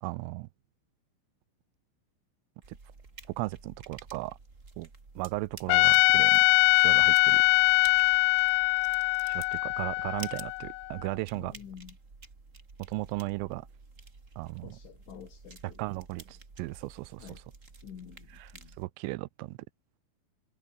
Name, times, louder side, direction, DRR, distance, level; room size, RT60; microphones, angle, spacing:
voice 1, 0.0-0.5 2.7-2.8 3.3-4.4 4.8-4.9 5.2-6.4 6.7-7.4 9.2-11.5 12.9-13.7 14.4-14.8 15.8-17.3 18.4-18.5 18.8-19.6, right 21 dB, 85° right, 3.4 m, -36 dB
sound 1, 2.6-18.9, right 3 dB, 20° right, 2.1 m, -51 dB
Trumpet, 5.7-10.9, left 25 dB, 90° left, 2.6 m, -23 dB
voice 2, 11.3-12.0 14.6-15.8 17.2-17.4 17.8-18.7, left 8 dB, 65° left, 5.9 m, -48 dB
omnidirectional pair, 5.9 m